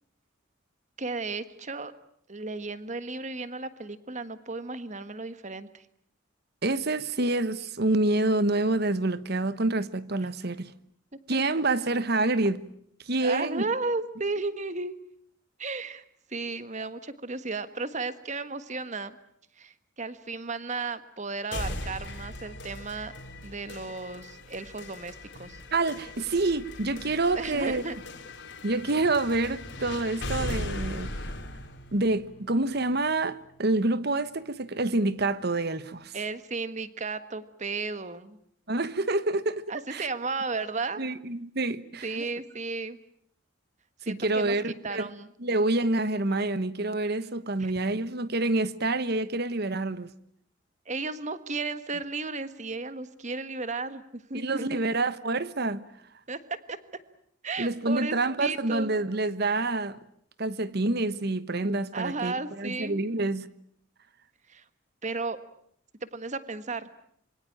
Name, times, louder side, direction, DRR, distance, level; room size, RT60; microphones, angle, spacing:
voice 1, 1.0-1.9 2.3-5.9 11.3-11.4 13.2-14.9 15.6-16.0 16.3-19.2 19.5-23.1 23.4-25.6 27.3-28.0 36.1-38.4 39.7-41.0 42.0-43.0 44.0-44.5 44.8-45.3 47.6-47.7 50.8-54.9 56.3-56.4 56.7-56.8 57.4-58.9 61.9-63.0 64.5-64.6 65.0-65.4 66.0-66.9, right 3 dB, 35° right, 1.5 m, -34 dB
voice 2, 6.6-10.7 11.3-12.6 13.1-13.6 25.7-27.8 28.6-31.1 31.9-36.2 38.7-39.6 39.9-40.1 41.0-42.3 44.1-45.1 45.4-50.1 54.3-55.8 57.6-60.0 60.4-63.5, right 2 dB, 55° right, 1.2 m, -27 dB
sound 1, 21.5-33.5, left 1 dB, 65° left, 3.8 m, -39 dB
26.5 x 23.5 x 8.8 m
head